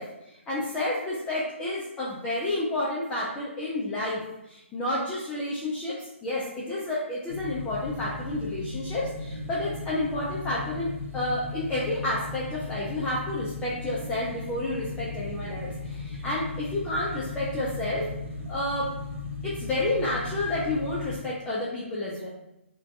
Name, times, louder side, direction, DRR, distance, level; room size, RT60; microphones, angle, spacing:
voice 1, 0.0-18.1 18.5-18.9 19.4-22.3, left 1 dB, 10° left, -7 dB, 0.4 m, -30 dB
sound 1, 7.3-21.2, left 3 dB, 90° right, 1.0 m, -36 dB
2.5 x 2.3 x 3.4 m, 0.87 s
figure-of-eight pair, 145°, 7 cm